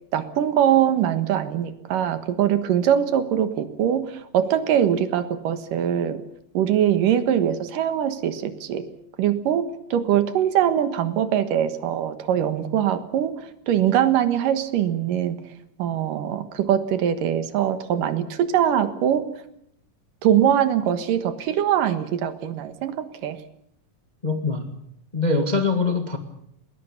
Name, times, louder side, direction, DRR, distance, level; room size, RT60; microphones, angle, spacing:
voice 1, 0.1-6.2 6.5-8.9 9.2-15.4 15.8-19.3 20.2-23.4, right 10 dB, 80° right, 3.1 m, -22 dB
voice 2, 24.2-24.7 25.1-26.2, left 3 dB, 20° left, 1.2 m, -23 dB
20.5 x 20.0 x 8.4 m
omnidirectional pair, 3.8 m